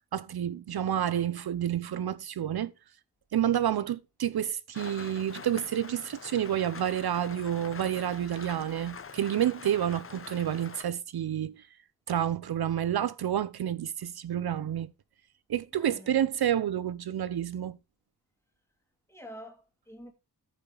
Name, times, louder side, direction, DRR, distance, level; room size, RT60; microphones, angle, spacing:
voice 1, 0.1-2.7 3.3-11.7 12.1-14.9 15.5-17.8, right 10 dB, 65° right, 0.7 m, -29 dB
Rain, 4.7-10.8, left 5 dB, 30° left, 1.0 m, -45 dB
voice 2, 15.7-16.2 19.1-20.1, equal, 5° left, 2.4 m, -47 dB
14.0 x 5.5 x 3.9 m
wide cardioid pair, 165°, 40 cm